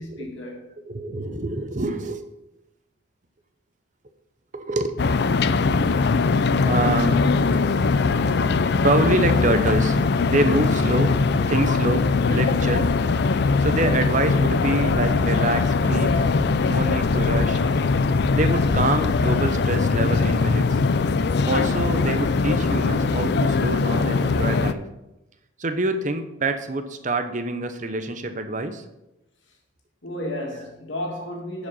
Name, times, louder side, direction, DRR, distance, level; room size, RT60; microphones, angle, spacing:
voice 1, 0.0-0.7 30.0-31.7, left 1 dB, 75° left, 2.1 m, -32 dB
voice 2, 0.8-2.2 4.5-5.0 6.2-6.3 6.6-7.3 8.8-10.0 10.2-11.1 11.5-12.9 13.6-16.3 16.6-17.6 18.3-20.8 21.5-24.8 25.6-28.8 31.2-31.3, right 2 dB, 40° right, 0.8 m, -26 dB
sound 1, 5.0-24.7, left 4 dB, 60° left, 0.4 m, -21 dB
11.0 x 5.2 x 5.5 m
head